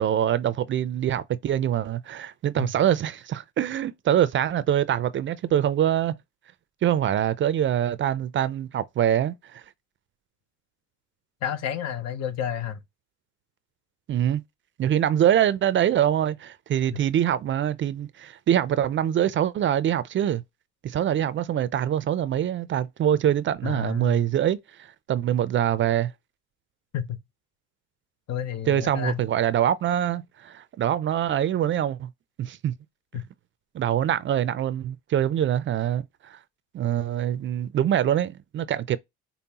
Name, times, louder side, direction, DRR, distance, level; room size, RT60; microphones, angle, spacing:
voice 1, 0.0-6.1 6.8-9.6 14.1-14.4 14.8-20.4 20.8-26.1 28.7-32.1 32.4-32.7 33.7-36.4 36.7-39.0, right 10 dB, 40° right, 0.4 m, -24 dB
voice 2, 11.4-12.8 16.9-17.0 23.6-24.2 26.9-27.2 28.3-29.2 33.1-33.3, left 9 dB, 60° left, 0.8 m, -31 dB
5.4 x 2.1 x 2.8 m
cardioid pair, 115°, 29 cm